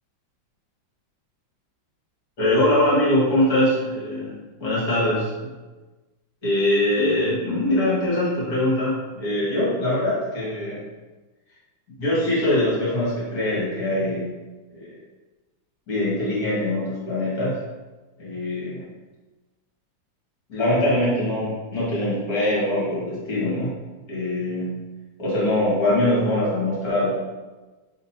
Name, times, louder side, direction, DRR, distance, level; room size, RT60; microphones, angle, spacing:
voice 1, 2.4-5.5 6.4-10.8 12.0-14.2 14.7-15.0 15.9-17.6 18.2-18.9 20.5-23.8 24.1-24.9 25.2-27.3, left 1 dB, 50° left, -8 dB, 2.1 m, -23 dB
3.6 x 3.0 x 4.2 m, 1.2 s
omnidirectional pair, 2.1 m